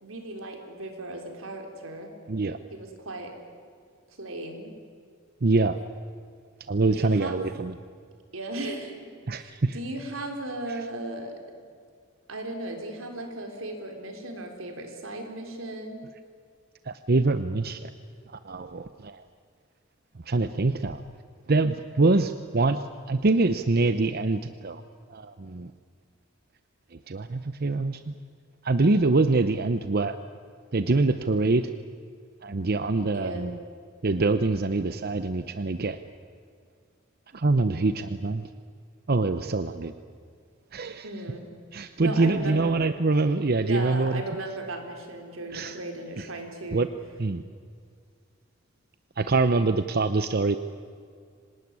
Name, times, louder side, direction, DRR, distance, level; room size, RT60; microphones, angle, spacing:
voice 1, 0.0-2.1 2.7-3.4 4.1-4.7 6.8-7.4 8.3-9.0 9.3-11.4 12.3-16.0 33.1-33.5 41.0-41.5 42.0-42.6 43.6-46.9, right 2 dB, 85° right, 4 dB, 3.8 m, -36 dB
voice 2, 2.3-2.6 5.4-5.8 6.7-7.7 9.3-9.8 16.9-17.9 18.4-19.2 20.3-21.0 21.5-24.8 25.1-25.7 27.1-28.1 28.6-30.2 30.7-31.7 32.4-33.5 34.0-36.0 37.3-38.5 39.1-39.9 40.7-41.1 41.7-44.2 45.5-45.8 46.2-46.3 46.7-46.9 47.2-47.4 49.2-50.6, right 3 dB, 50° right, 10 dB, 0.7 m, -24 dB
25.5 x 19.0 x 9.7 m, 2.2 s
head